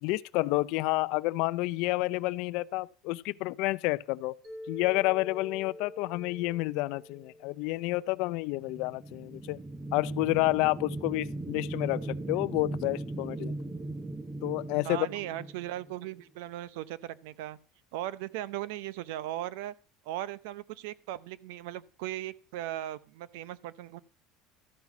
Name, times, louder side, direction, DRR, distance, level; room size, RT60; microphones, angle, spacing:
voice 1, 0.0-4.3 4.7-9.6 9.9-13.5 14.4-15.1, left 21 dB, 60° left, 0.4 m, -29 dB
Mallet percussion, 4.4-8.6, left 1 dB, 45° right, 3.9 m, -47 dB
sound 1, 8.5-16.2, right 2 dB, 10° right, 0.7 m, -38 dB
voice 2, 14.8-17.6 17.9-19.7 20.0-24.0, right 13 dB, 75° right, 0.7 m, -38 dB
13.0 x 5.8 x 6.0 m
cardioid pair, 170°, 0 cm